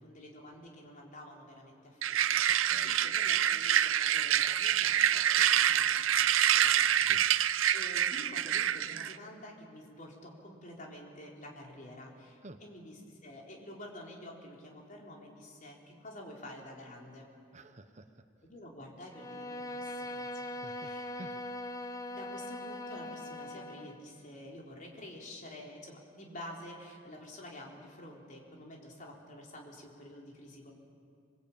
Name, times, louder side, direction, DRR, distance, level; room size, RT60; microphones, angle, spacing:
voice 1, 0.0-6.9 7.3-17.3 18.4-20.3 20.7-21.1 22.1-30.7, left 1 dB, 40° left, -1 dB, 4.1 m, -49 dB
sound 1, 2.0-9.1, right 10 dB, 90° right, 0.6 m, -27 dB
voice 2, 2.6-3.0 6.9-7.3 12.4-12.6 17.5-18.1 20.5-21.4, right 1 dB, 35° right, 8 dB, 1.0 m, -51 dB
Bowed string instrument, 19.1-24.0, left 1 dB, 20° left, 0.8 m, -41 dB
26.5 x 20.0 x 8.8 m, 2.4 s
head